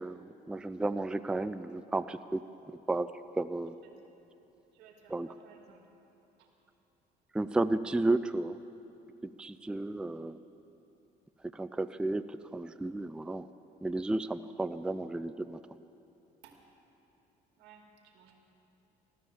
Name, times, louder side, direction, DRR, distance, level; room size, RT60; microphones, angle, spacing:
voice 1, 0.0-2.4 2.9-3.1 3.4-3.7 5.1-5.3 7.3-8.6 9.2-10.4 11.5-13.5 13.8-15.6, right 2 dB, 5° right, 12 dB, 0.4 m, -33 dB
voice 2, 4.7-5.8 6.4-6.5 16.4-16.6 17.6-18.4, right 7 dB, 90° right, 1 dB, 2.4 m, -58 dB
15.0 x 13.0 x 7.4 m, 3.0 s
cardioid pair, 110°, 17 cm